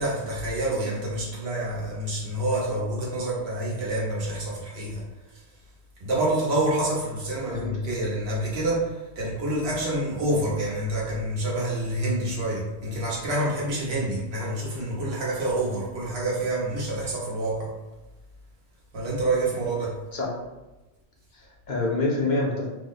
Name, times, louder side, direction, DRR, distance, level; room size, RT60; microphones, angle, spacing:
voice 1, 0.0-5.0 6.0-17.7 18.9-20.0, right 1 dB, 80° right, -5 dB, 1.2 m, -27 dB
voice 2, 21.3-22.7, left 2 dB, 55° left, -2 dB, 0.6 m, -26 dB
2.8 x 2.0 x 3.9 m, 1.1 s
omnidirectional pair, 1.1 m